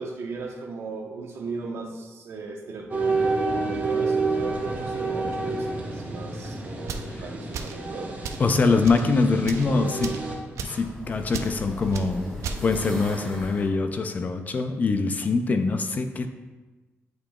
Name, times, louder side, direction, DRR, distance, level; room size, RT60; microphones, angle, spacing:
voice 1, 0.0-8.1, right 4 dB, 60° right, 2 dB, 0.8 m, -36 dB
sound 1, 2.9-10.3, right 3 dB, 35° right, 1.0 m, -29 dB
sound 2, 4.2-6.4 6.7-13.7, left 1 dB, 10° left, 2.0 m, -41 dB
sound 3, 6.8-7.1 7.5-7.8 8.2-8.5 8.8-9.0 9.4-9.7 10.0-10.2 10.6-10.8 11.3-11.5 11.9-12.1 12.4-12.6, right 6 dB, 90° right, 0.5 m, -34 dB
voice 2, 8.4-10.2 10.6-12.3 12.6-16.3, left 4 dB, 35° left, 8 dB, 0.4 m, -24 dB
8.8 x 5.1 x 2.3 m, 1.2 s
wide cardioid pair, 170°, 5 cm